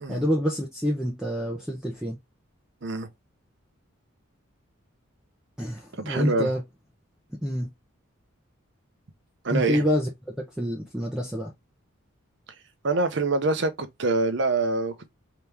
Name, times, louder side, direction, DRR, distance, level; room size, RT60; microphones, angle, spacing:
voice 1, 0.1-2.2 5.6-6.6 7.4-7.7 9.5-10.1 10.4-11.5, equal, 5° right, 0.6 m, -27 dB
voice 2, 6.1-6.5 9.4-9.8 12.8-15.1, right 3 dB, 55° right, 0.7 m, -25 dB
3.4 x 2.9 x 3.3 m
head